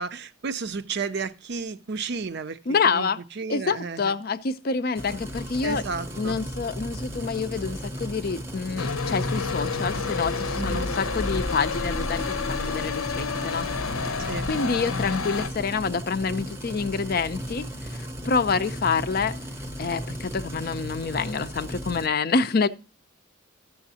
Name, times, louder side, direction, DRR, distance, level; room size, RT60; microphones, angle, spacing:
voice 1, 0.0-2.6 2.8-3.1 3.4-4.1 5.6-6.4 10.6-10.9 14.3-14.5, right 5 dB, 50° right, 0.5 m, -32 dB
voice 2, 2.7-3.2 3.5-5.8 6.1-13.7 14.5-19.3 19.8-22.7, left 5 dB, 45° left, 0.4 m, -27 dB
sound 1, 4.9-22.1, equal, 10° right, 0.7 m, -36 dB
sound 2, 8.8-15.5, left 4 dB, 85° left, 0.8 m, -29 dB
12.0 x 6.9 x 2.7 m
head